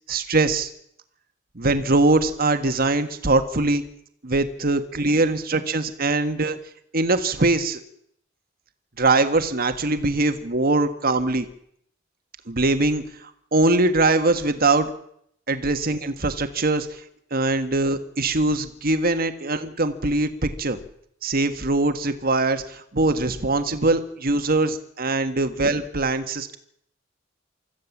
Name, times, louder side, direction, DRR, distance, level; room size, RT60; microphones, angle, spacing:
voice 1, 0.1-0.7 1.6-3.8 4.2-6.6 6.9-7.8 9.0-11.5 12.5-13.0 13.5-14.9 15.5-17.0 17.3-20.8 21.2-26.6, right 2 dB, 50° right, 9 dB, 1.7 m, -22 dB
25.0 x 14.5 x 7.3 m, 0.71 s
head